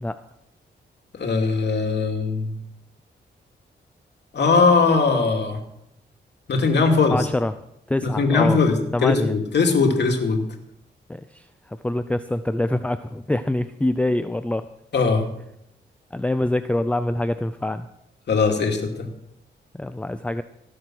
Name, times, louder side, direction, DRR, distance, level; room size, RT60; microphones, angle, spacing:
voice 1, 1.1-2.5 4.3-5.6 6.5-7.2 8.0-10.4 14.9-15.2 18.3-19.1, left 4 dB, 65° left, 2 dB, 2.7 m, -20 dB
voice 2, 7.1-7.5 7.9-8.6 8.9-9.3 11.1-14.6 16.1-17.9 19.7-20.4, left 1 dB, 5° left, 11 dB, 0.5 m, -25 dB
17.0 x 7.5 x 6.4 m, 0.80 s
cardioid pair, 75°, 19 cm